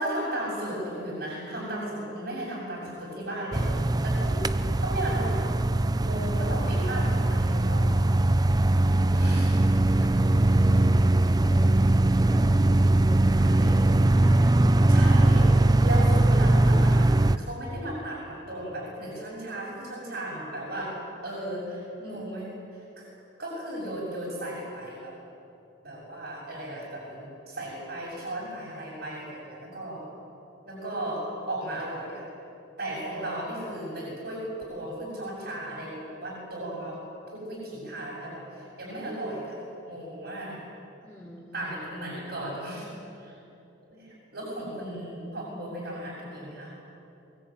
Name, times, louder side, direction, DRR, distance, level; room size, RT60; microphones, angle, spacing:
voice 1, 0.0-3.8 4.0-4.4 4.8-5.4 6.0-8.0 9.2-9.7 9.9-10.2 13.3-13.8 14.9-15.5 15.8-22.5 22.7-23.1 23.4-25.2 25.8-30.1 30.7-32.3 32.8-40.7 41.5-42.9 43.2-43.4 43.9-46.8, right 1 dB, 55° right, -6 dB, 6.8 m, -35 dB
sound 1, 3.5-17.4, right 1 dB, 20° right, 0.5 m, -21 dB
voice 2, 8.9-9.4 10.0-12.0 12.3-13.5 14.2-14.8 16.6-16.9 19.5-20.1 21.3-21.4 22.0-22.2 41.0-41.6, left 1 dB, 5° left, -8 dB, 4.4 m, -46 dB
23.0 x 21.0 x 9.0 m, 2.8 s
head